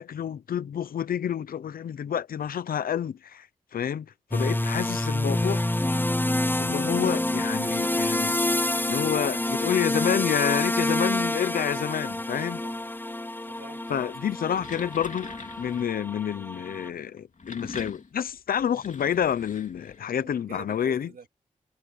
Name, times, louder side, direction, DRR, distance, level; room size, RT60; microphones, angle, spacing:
voice 1, 0.0-3.5 3.7-4.1 4.3-5.6 6.6-8.3 8.9-12.6 13.9-21.1, left 9 dB, 90° left, 0.8 m, -29 dB
sound 1, 4.3-16.9, left 1 dB, 15° left, 0.9 m, -28 dB
voice 2, 12.5-12.9 13.5-14.9 20.1-21.3, right 6 dB, 80° right, 3.3 m, -48 dB
sound 2, 14.3-16.0 17.1-20.2, left 4 dB, 60° left, 3.1 m, -43 dB
cardioid pair, 40°, 15 cm